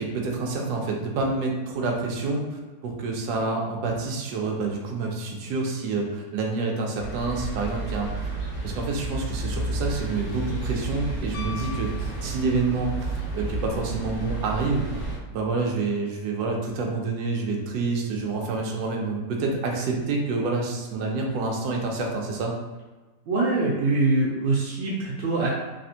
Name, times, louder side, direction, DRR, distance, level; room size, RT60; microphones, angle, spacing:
voice 1, 0.0-8.4 8.6-14.8 15.3-22.5, right 3 dB, 70° right, 0 dB, 1.0 m, -28 dB
sound 1, 7.0-15.2, right 2 dB, 50° left, 0.6 m, -31 dB
Piano, 11.3-12.9 15.3-15.4, left 7 dB, 75° left, 1.2 m, -41 dB
voice 2, 23.3-25.5, right 3 dB, 85° right, -5 dB, 1.3 m, -23 dB
3.3 x 2.5 x 2.7 m, 1.3 s
omnidirectional pair, 2.0 m